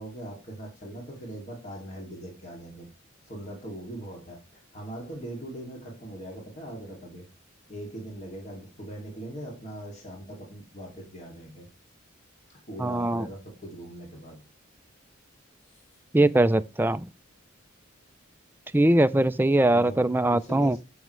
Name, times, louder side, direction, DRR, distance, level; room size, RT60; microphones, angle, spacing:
voice 1, 0.0-2.9 3.2-7.3 7.7-11.7 12.7-14.4 15.7-15.8 19.6-20.8, right 1 dB, 30° left, 2.5 m, -41 dB
voice 2, 12.8-13.3 16.1-17.1 18.7-20.8, right 1 dB, 10° right, 0.4 m, -21 dB
14.5 x 6.4 x 3.2 m
head